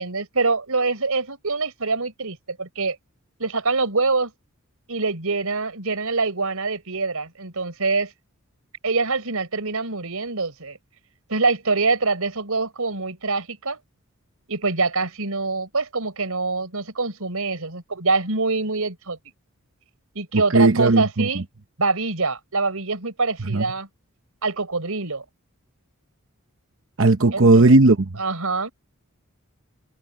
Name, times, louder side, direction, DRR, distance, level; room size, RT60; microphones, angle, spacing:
voice 1, 0.0-3.0 3.4-4.3 4.9-8.1 8.8-10.8 11.3-13.8 14.5-19.2 20.1-21.4 21.8-23.9 24.4-25.2 27.3-27.6 28.1-28.7, right 3 dB, 85° right, 4.3 m, -25 dB
voice 2, 20.5-21.3 23.5-23.6 27.0-28.0, right 2 dB, 65° right, 0.9 m, -15 dB
head